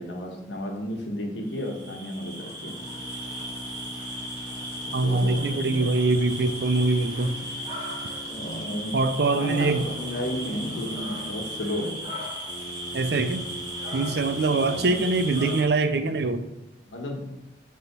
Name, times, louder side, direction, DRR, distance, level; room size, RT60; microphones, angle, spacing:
voice 1, 0.0-2.7 4.8-5.9 8.2-9.0 9.3-12.0 14.5-15.0 16.9-17.3, left 1 dB, 90° left, 1 dB, 1.3 m, -33 dB
sound 1, 1.5-15.6, right 1 dB, 25° right, 2.3 m, -36 dB
sound 2, 2.8-5.4 6.3-8.6 9.6-11.7 12.5-15.5, left 1 dB, 20° left, 0.3 m, -42 dB
voice 2, 4.9-7.4 8.9-9.9 12.9-13.4 13.9-16.5, right 3 dB, 65° right, 10 dB, 0.5 m, -23 dB
6.7 x 3.6 x 5.9 m, 0.96 s
head